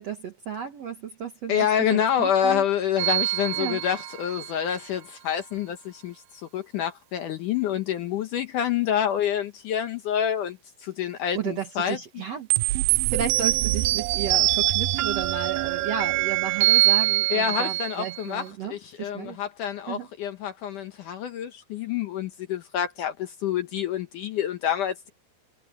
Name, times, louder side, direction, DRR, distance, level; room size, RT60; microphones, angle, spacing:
voice 1, 0.0-1.7 1.9-2.6 3.6-3.8 11.3-12.5 13.1-19.4 19.9-20.1, right 7 dB, 65° right, 1.7 m, -33 dB
voice 2, 1.5-12.0 17.3-25.1, left 9 dB, 70° left, 2.1 m, -27 dB
sound 1, 3.0-4.5 12.5-18.2, right 19 dB, 85° right, 2.1 m, -24 dB
omnidirectional pair, 4.7 m